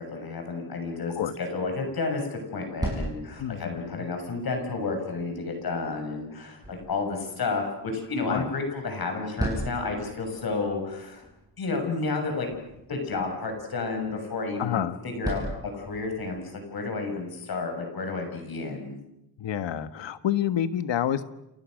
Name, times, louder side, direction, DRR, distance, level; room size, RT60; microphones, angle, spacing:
voice 1, 0.0-11.2 11.6-12.5 12.9-19.0, left 3 dB, 55° left, 4 dB, 6.6 m, -31 dB
sound 1, 2.5-16.5, right 1 dB, 10° right, 7.3 m, -40 dB
voice 2, 3.4-4.1 8.3-8.5 14.6-15.0 19.4-21.2, left 10 dB, 85° left, 12 dB, 1.6 m, -28 dB
30.0 x 28.0 x 6.5 m, 0.88 s
wide cardioid pair, 140°, 43 cm